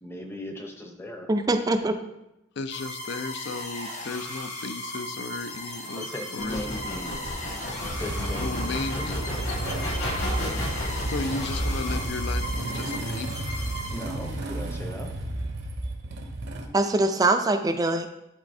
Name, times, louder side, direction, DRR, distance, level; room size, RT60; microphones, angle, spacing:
voice 1, 0.0-1.3 6.0-7.1 8.0-9.9 13.9-15.1, left 1 dB, 10° left, 3 dB, 0.7 m, -38 dB
voice 2, 1.3-1.9 16.7-18.1, right 2 dB, 20° right, 7 dB, 0.4 m, -23 dB
voice 3, 2.6-6.1 6.3-7.2 7.5-7.6 8.4-9.3 11.1-13.5, left 3 dB, 60° left, 10 dB, 0.5 m, -35 dB
sound 1, 2.7-14.5, left 1 dB, 35° left, 1.1 m, -37 dB
sound 2, 6.4-12.1, left 1 dB, 85° left, 2.0 m, -34 dB
Motorcycle / Engine starting, 7.8-16.7, right 1 dB, 55° right, 0.7 m, -32 dB
11.0 x 4.1 x 2.6 m, 0.90 s
head